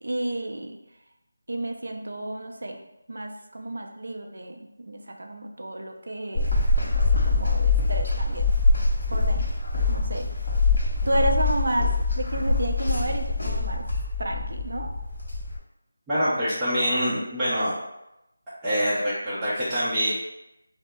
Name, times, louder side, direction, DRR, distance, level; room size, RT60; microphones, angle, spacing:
voice 1, 0.0-0.8 1.5-2.8 3.1-8.5 9.1-9.6 9.9-10.5 11.0-13.9 14.2-14.9, right 1 dB, 70° right, 3 dB, 0.5 m, -31 dB
sound 1, 6.4-15.6, left 3 dB, 55° left, 1.0 m, -24 dB
voice 2, 16.1-17.7 18.6-20.1, equal, 10° right, -15 dB, 0.7 m, -25 dB
4.4 x 2.0 x 2.2 m, 0.89 s
figure-of-eight pair, 165°, 0 cm